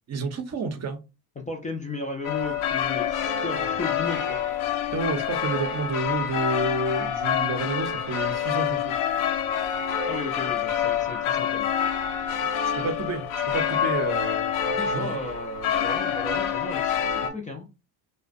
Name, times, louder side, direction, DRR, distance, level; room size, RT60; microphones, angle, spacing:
voice 1, 0.1-1.0 4.9-9.0 12.4-15.2, right 3 dB, 35° right, 0.6 m, -30 dB
voice 2, 1.4-4.4 10.1-11.7 14.7-17.7, left 2 dB, 20° left, 0.3 m, -35 dB
sound 1, 2.2-17.3, left 8 dB, 85° left, 0.6 m, -27 dB
2.4 x 2.1 x 2.4 m
supercardioid pair, 75°, 48 cm